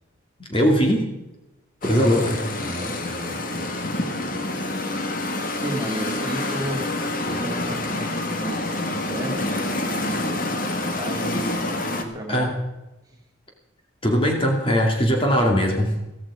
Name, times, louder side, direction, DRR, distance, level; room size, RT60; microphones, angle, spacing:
voice 1, 0.5-1.1 1.8-2.4 12.3-12.5 14.0-15.9, equal, 25° left, 1 dB, 2.4 m, -20 dB
sound 1, 1.8-12.0, left 2 dB, 45° left, 1.7 m, -27 dB
voice 2, 1.9-2.3 2.6-3.8 5.6-12.5 13.1-13.2, right 1 dB, 20° right, 0 dB, 2.9 m, -34 dB
15.5 x 15.0 x 4.9 m, 0.98 s
head